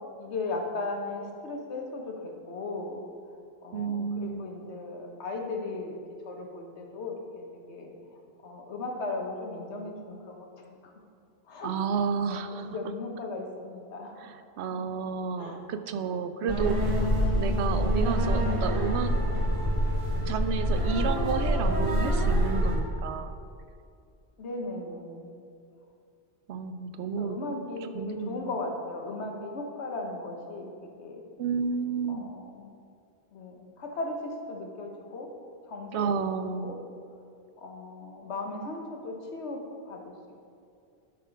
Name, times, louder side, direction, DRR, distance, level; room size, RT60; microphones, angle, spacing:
voice 1, 0.2-3.0 3.6-5.9 6.2-7.9 8.4-10.5 11.5-11.7 12.3-14.1 14.7-14.8 15.4-15.6 17.5-17.8 24.4-25.3 27.2-30.7 31.0-31.2 32.1-32.7 33.3-35.3 35.7-36.3 36.6-36.8 37.6-39.6 39.8-40.1, left 2 dB, 80° left, 2 dB, 1.3 m, -37 dB
voice 2, 3.7-4.5 11.6-12.8 14.2-16.9 17.3-19.2 20.3-23.3 26.5-27.4 27.9-28.5 31.4-32.3 35.9-36.7, right 6 dB, 80° right, 9 dB, 0.8 m, -31 dB
sound 1, 16.5-22.8, equal, 30° right, 1.3 m, -26 dB
11.5 x 4.3 x 5.1 m, 2.4 s
omnidirectional pair, 1.1 m